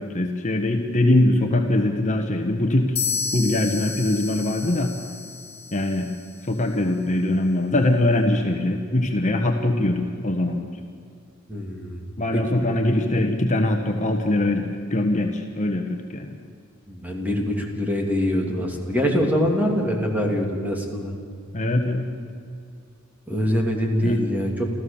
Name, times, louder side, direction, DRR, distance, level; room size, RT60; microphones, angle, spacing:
voice 1, 0.0-3.0 3.3-4.9 5.7-6.1 6.4-10.7 12.2-14.6 14.9-16.3 21.5-22.1 24.0-24.2, left 1 dB, 35° left, 4 dB, 1.3 m, -22 dB
sound 1, 3.0-6.7, left 6 dB, 50° left, 1.8 m, -32 dB
voice 2, 11.5-12.0 12.3-12.5 16.9-21.1 23.3-24.6, equal, 10° right, 1 dB, 3.0 m, -24 dB
28.0 x 14.5 x 7.2 m, 2.3 s
head